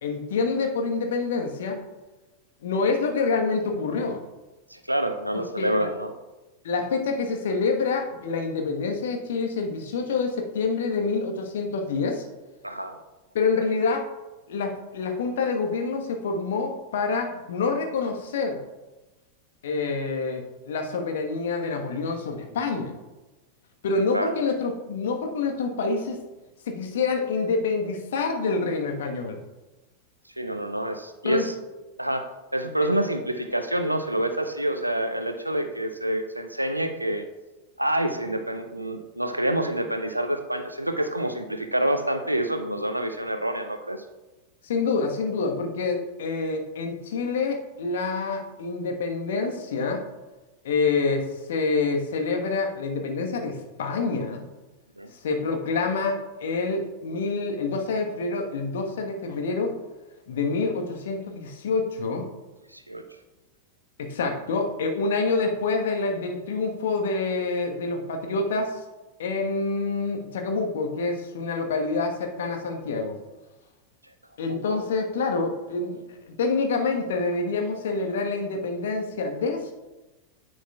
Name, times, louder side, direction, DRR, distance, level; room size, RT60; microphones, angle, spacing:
voice 1, 0.0-1.8 2.6-4.2 5.3-5.9 6.6-12.3 13.3-14.0 14.5-18.6 19.6-23.0 23.8-26.2 26.7-29.4 31.2-31.5 44.6-50.0 50.6-54.5 55.1-59.8 60.3-62.3 64.0-68.8 69.2-73.2 74.4-76.0 76.4-79.8, left 4 dB, 60° left, 3 dB, 1.2 m, -27 dB
voice 2, 4.7-6.1 12.6-13.0 24.1-24.3 30.4-31.5 32.0-37.3 37.8-44.0 55.0-55.1 62.7-63.0 74.7-74.8, right 1 dB, 85° right, 8 dB, 0.6 m, -27 dB
10.0 x 7.8 x 2.3 m, 1.1 s
figure-of-eight pair, 90°, 0 cm